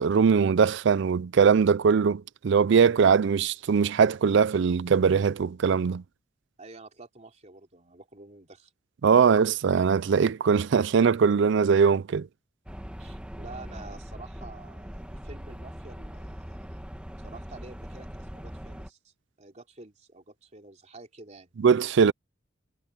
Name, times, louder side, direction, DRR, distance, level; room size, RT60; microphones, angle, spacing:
voice 1, 0.0-6.0 9.0-12.3 21.6-22.1, right 6 dB, 65° right, 0.4 m, -21 dB
voice 2, 6.6-8.7 13.0-16.8 17.2-21.5, right 3 dB, 35° right, 3.3 m, -49 dB
sound 1, 12.7-18.9, equal, 5° right, 1.4 m, -41 dB
head